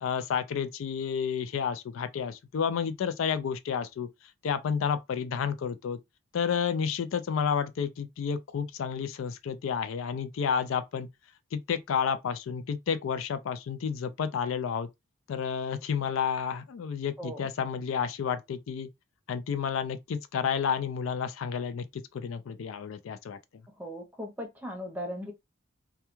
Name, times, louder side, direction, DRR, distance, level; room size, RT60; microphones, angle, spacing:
voice 1, 0.0-4.1 4.4-6.0 6.3-11.1 11.5-14.9 15.3-18.9 19.3-23.4, left 7 dB, 80° left, 0.3 m, -31 dB
voice 2, 17.2-17.5 23.8-25.3, equal, 10° right, 0.6 m, -38 dB
2.2 x 2.2 x 2.9 m
head